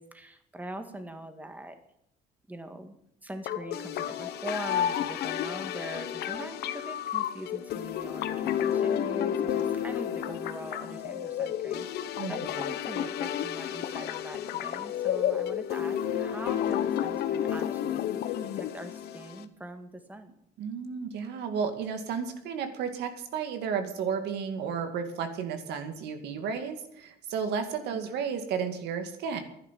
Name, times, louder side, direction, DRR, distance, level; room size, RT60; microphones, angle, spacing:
voice 1, 0.0-1.8 2.5-3.0 3.2-18.1 18.5-20.3 27.9-28.0, right 1 dB, 10° right, 6 dB, 2.0 m, -42 dB
sound 1, 3.5-19.4, left 10 dB, 75° left, 1.1 m, -31 dB
voice 2, 12.2-12.5 20.6-29.4, right 6 dB, 80° right, 7 dB, 2.2 m, -33 dB
12.0 x 10.5 x 7.5 m, 0.75 s
cardioid pair, 110°, 17 cm